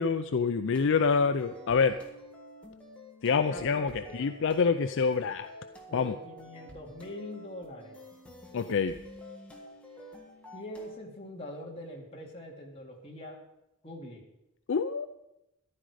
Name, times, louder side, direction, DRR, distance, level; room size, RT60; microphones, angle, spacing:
voice 1, 0.0-2.0 3.2-5.5 5.9-6.1 8.5-8.9 14.7-15.1, left 5 dB, 55° left, 10 dB, 0.5 m, -26 dB
sound 1, 0.7-10.9, left 1 dB, 5° left, 1.8 m, -49 dB
voice 2, 3.5-4.2 5.9-8.0 10.5-13.4 13.8-14.2, left 1 dB, 25° left, -1 dB, 2.4 m, -43 dB
14.0 x 11.5 x 4.9 m, 0.90 s
head